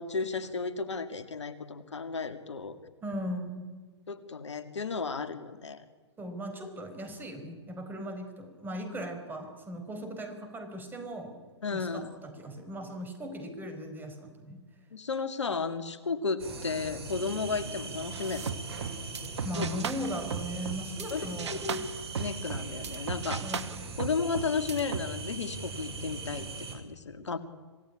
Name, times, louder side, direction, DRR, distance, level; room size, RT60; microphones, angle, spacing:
voice 1, 0.0-2.8 4.1-5.8 11.6-12.2 14.9-18.5 19.5-19.7 21.1-21.9 22.2-23.5 24.0-27.4, left 4 dB, 85° left, 11 dB, 2.2 m, -33 dB
voice 2, 3.0-3.6 6.2-11.4 11.7-14.6 19.4-21.8 23.4-24.0, equal, 15° right, 7 dB, 4.7 m, -38 dB
sound 1, 16.4-26.8, right 4 dB, 60° right, 6.5 m, -40 dB
sound 2, 18.1-21.1 21.4-25.0, right 6 dB, 75° right, 1.5 m, -37 dB
26.5 x 17.5 x 10.0 m, 1.4 s
hypercardioid pair, 125°, 15 cm